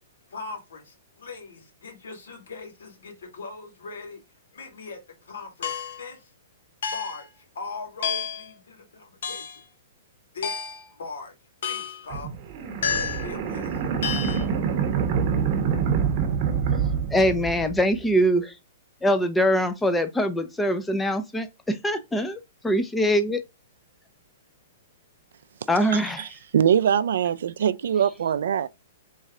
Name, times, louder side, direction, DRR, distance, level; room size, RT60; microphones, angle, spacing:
voice 1, 0.3-4.2 4.5-6.3 6.9-9.5 10.3-10.5 10.9-11.3 11.6-12.3 12.8-14.7, left 3 dB, 85° left, 2.2 m, -40 dB
sound 1, 5.6-6.1 6.8-7.3 8.0-8.5 9.2-9.6 10.4-10.9 11.6-12.1 12.8-13.3 14.0-14.4, left 7 dB, 70° left, 0.9 m, -30 dB
sound 2, 12.1-18.0, right 6 dB, 40° right, 0.9 m, -26 dB
voice 2, 17.1-18.5 19.0-23.4 25.7-26.3, equal, 5° left, 0.5 m, -23 dB
voice 3, 25.9-26.3 26.5-28.7, right 8 dB, 75° right, 0.3 m, -22 dB
4.0 x 3.2 x 3.6 m
hypercardioid pair, 150°, 0 cm